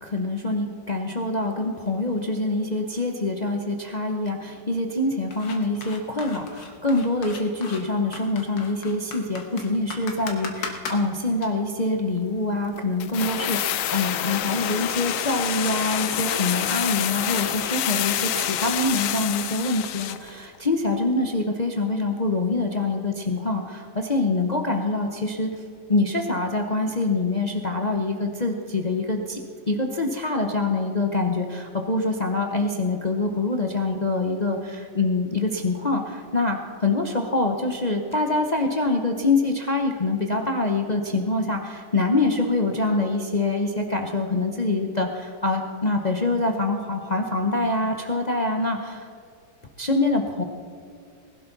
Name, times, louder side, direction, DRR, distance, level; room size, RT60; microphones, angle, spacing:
voice 1, 0.0-25.5 25.9-29.4 29.7-49.1 49.8-50.4, left 2 dB, 45° left, 3 dB, 0.5 m, -25 dB
sound 1, 5.3-11.5, left 4 dB, 70° left, 2.1 m, -37 dB
sound 2, 13.0-20.3 20.5-20.6, left 11 dB, 85° left, 0.7 m, -27 dB
19.5 x 12.0 x 4.0 m, 2.4 s
omnidirectional pair, 2.1 m